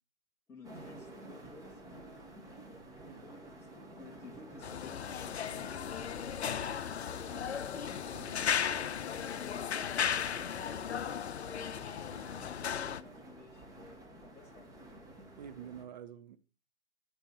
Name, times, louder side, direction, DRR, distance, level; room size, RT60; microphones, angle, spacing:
voice 1, 0.5-1.8 3.2-7.6 8.1-11.8 12.3-15.1, left 4 dB, 10° left, 0.8 m, -54 dB
sound 1, 0.6-15.9, right 1 dB, 10° right, 1.2 m, -51 dB
sound 2, 4.6-13.0, left 8 dB, 70° left, 0.6 m, -36 dB
voice 2, 15.4-16.4, right 9 dB, 40° right, 0.6 m, -48 dB
9.6 x 4.6 x 4.7 m
figure-of-eight pair, 120°, 33 cm